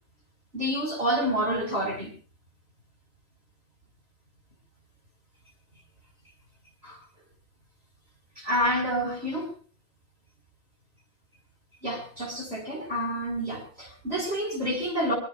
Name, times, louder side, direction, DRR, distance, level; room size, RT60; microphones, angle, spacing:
voice 1, 0.5-2.1 6.8-7.0 8.4-9.5 11.8-15.1, equal, 30° right, 0 dB, 5.4 m, -28 dB
24.0 x 23.5 x 2.5 m, 0.37 s
omnidirectional pair, 2.0 m